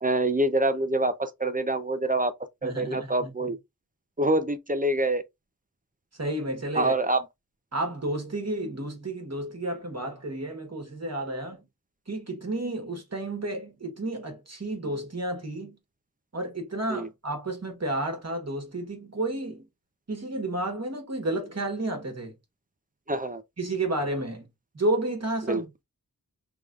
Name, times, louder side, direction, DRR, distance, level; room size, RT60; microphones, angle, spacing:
voice 1, 0.0-2.3 2.6-3.6 4.2-5.2 6.8-7.2 16.9-17.1 23.1-23.4 25.5-25.6, right 1 dB, 25° right, 0.5 m, -25 dB
voice 2, 2.6-3.5 6.2-6.9 7.7-11.6 12.1-15.8 16.3-19.6 20.1-22.3 23.6-24.5 24.7-25.8, right 1 dB, 50° right, 1.3 m, -31 dB
4.9 x 3.5 x 2.4 m
wide cardioid pair, 65°, 34 cm